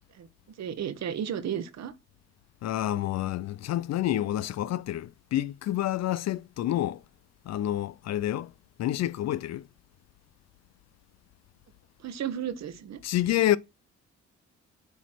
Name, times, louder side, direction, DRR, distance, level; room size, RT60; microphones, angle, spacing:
voice 1, 0.6-1.9 12.0-13.0, right 9 dB, 60° right, 1.2 m, -33 dB
voice 2, 2.6-7.0 7.5-8.5 8.8-9.7 13.0-13.6, left 13 dB, 60° left, 0.5 m, -28 dB
8.2 x 3.1 x 5.9 m
cardioid pair, 90°, 30 cm